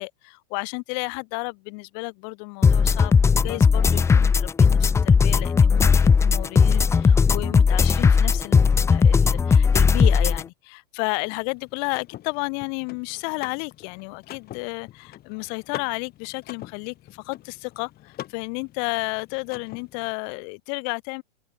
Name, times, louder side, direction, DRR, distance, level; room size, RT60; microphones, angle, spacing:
voice 1, 0.0-21.2, left 40 dB or more, 50° left, 5.0 m, -32 dB
sound 1, 2.6-10.4, left 5 dB, 10° left, 0.5 m, -17 dB
Car / Mechanisms, 11.2-20.1, left 14 dB, 35° left, 5.6 m, -44 dB
open air
hypercardioid pair, 130°, 29 cm